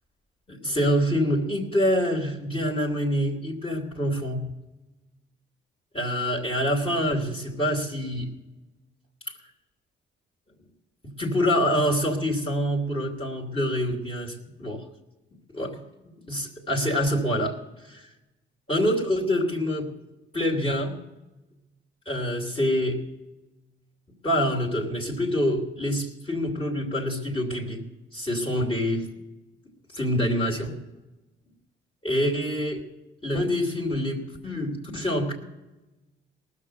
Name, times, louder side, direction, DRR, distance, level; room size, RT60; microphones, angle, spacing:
voice 1, 0.5-4.5 5.9-8.3 11.0-14.9 15.5-15.8 16.3-18.1 18.7-19.9 20.3-21.0 22.0-23.1 24.2-27.8 28.1-29.1 29.9-30.8 32.0-32.8 33.2-35.3, equal, 30° left, -1 dB, 3.0 m, -26 dB
18.5 x 6.8 x 7.6 m, 1.0 s
cardioid pair, 90°, 20 cm